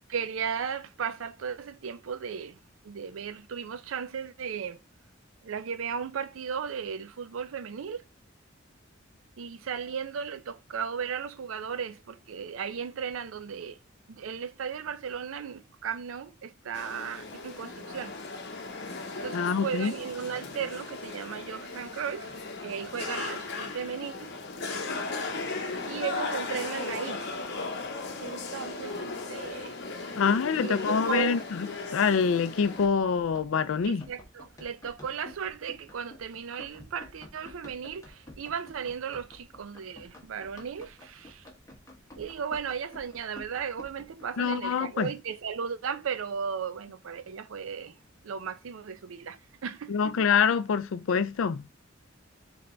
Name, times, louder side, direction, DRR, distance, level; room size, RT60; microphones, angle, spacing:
voice 1, 0.1-2.6 2.8-4.8 5.4-8.0 9.4-13.8 14.1-18.1 19.2-24.4 25.9-27.3 28.2-29.7 30.0-30.2 30.5-31.4 33.8-41.5 42.2-48.0 48.2-50.3, right 7 dB, 80° right, 0.5 m, -36 dB
sound 1, 16.7-32.9, left 3 dB, 55° left, 0.8 m, -37 dB
voice 2, 19.3-19.9 30.2-31.7 31.9-34.0 44.4-45.1 49.9-51.6, left 6 dB, 75° left, 0.4 m, -25 dB
Run, 32.5-44.2, left 1 dB, 15° left, 1.3 m, -51 dB
3.4 x 3.3 x 3.8 m
head